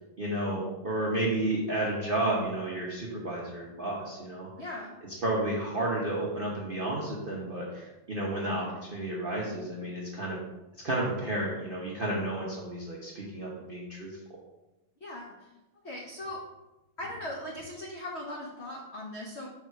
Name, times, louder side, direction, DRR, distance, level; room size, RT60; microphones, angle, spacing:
voice 1, 0.2-4.5 5.2-10.4 10.8-14.1, right 1 dB, 65° right, -4 dB, 0.5 m, -31 dB
voice 2, 4.6-4.9 15.0-15.5 15.8-16.4 17.0-19.5, left 1 dB, 70° left, -3 dB, 0.6 m, -39 dB
5.9 x 3.5 x 4.6 m, 1.0 s
omnidirectional pair, 2.4 m